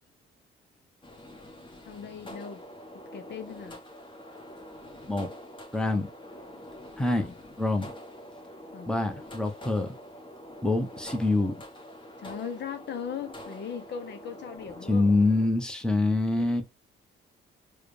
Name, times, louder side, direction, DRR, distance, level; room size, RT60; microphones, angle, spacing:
sound 1, 1.0-15.5, left 1 dB, 25° left, 1.3 m, -45 dB
voice 1, 1.9-2.6 3.1-3.8 7.2-7.3 8.7-8.9 12.2-15.1 16.4-16.5, left 7 dB, 60° left, 0.7 m, -38 dB
voice 2, 5.7-6.1 7.0-7.3 7.6-7.9 8.8-9.9 10.6-11.5 14.9-16.6, left 2 dB, 5° left, 0.9 m, -25 dB
4.7 x 2.3 x 3.2 m
cardioid pair, 90°, 20 cm